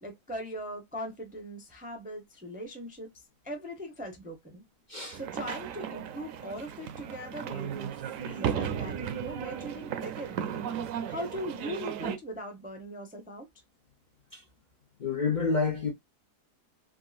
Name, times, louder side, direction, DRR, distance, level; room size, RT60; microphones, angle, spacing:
voice 1, 0.0-4.6 5.1-10.4 11.1-13.5, equal, 15° right, 0.3 m, -40 dB
sound 1, 5.1-12.2, right 9 dB, 70° right, 0.9 m, -35 dB
voice 2, 15.0-15.9, left 4 dB, 60° left, 0.4 m, -28 dB
3.6 x 2.3 x 2.3 m
omnidirectional pair, 1.6 m